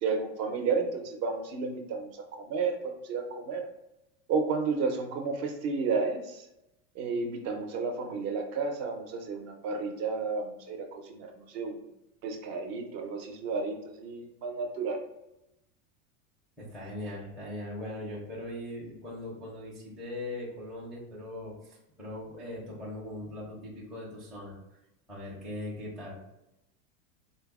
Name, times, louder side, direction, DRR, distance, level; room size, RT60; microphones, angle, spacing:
voice 1, 0.0-3.7 4.3-6.4 7.0-11.8 12.2-15.0, right 4 dB, 45° right, 4 dB, 0.6 m, -32 dB
voice 2, 16.6-24.6 25.1-26.2, left 1 dB, ahead, -8 dB, 0.4 m, -40 dB
3.8 x 2.0 x 3.5 m, 0.89 s
supercardioid pair, 150°, 45 cm